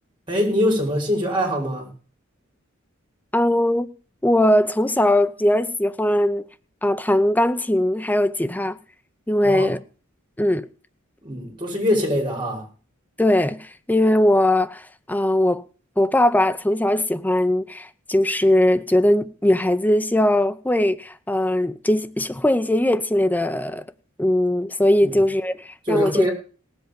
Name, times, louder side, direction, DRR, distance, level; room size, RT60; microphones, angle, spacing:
voice 1, 0.3-1.9 9.4-9.7 11.2-12.7 25.0-25.2 25.9-26.3, equal, 25° right, 5.4 m, -23 dB
voice 2, 3.3-3.9 4.2-6.4 6.8-8.8 9.3-9.8 10.4-10.7 13.2-15.6 16.0-23.8 24.2-26.1, left 1 dB, 10° left, 0.6 m, -20 dB
18.0 x 8.0 x 5.2 m
head